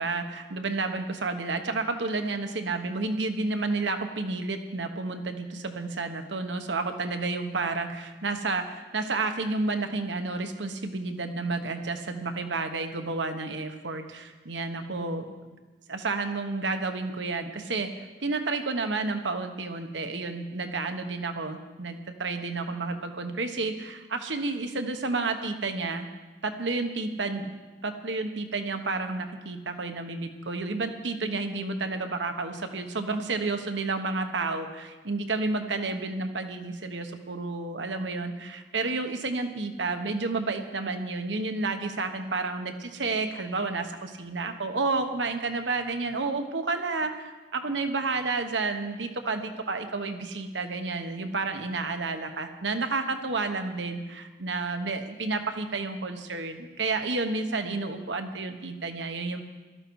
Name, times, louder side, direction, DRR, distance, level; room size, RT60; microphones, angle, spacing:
voice 1, 0.0-15.3 15.9-26.1 26.4-27.5 27.8-59.4, right 3 dB, 90° right, 6 dB, 1.2 m, -31 dB
17.5 x 13.0 x 4.8 m, 1.2 s
head